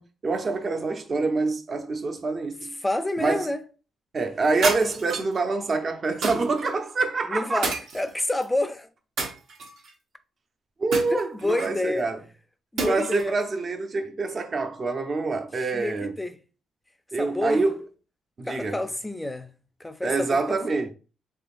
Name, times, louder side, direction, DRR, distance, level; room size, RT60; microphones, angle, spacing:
voice 1, 0.0-2.8 3.2-3.5 4.1-7.7 10.8-12.2 12.9-16.2 17.1-17.9 18.4-18.8 20.0-20.9, right 3 dB, 40° right, 0.7 m, -26 dB
voice 2, 2.8-3.6 7.3-8.9 11.1-12.0 12.7-13.3 15.7-16.4 17.2-17.6 18.5-19.5 19.8-20.6, left 1 dB, 10° left, 0.5 m, -28 dB
sound 1, 4.6-5.4 6.2-6.7 7.6-8.4 9.2-9.9 10.9-11.8 12.8-13.3, right 3 dB, 80° right, 1.2 m, -30 dB
3.6 x 3.4 x 2.5 m
cardioid pair, 90°, 0 cm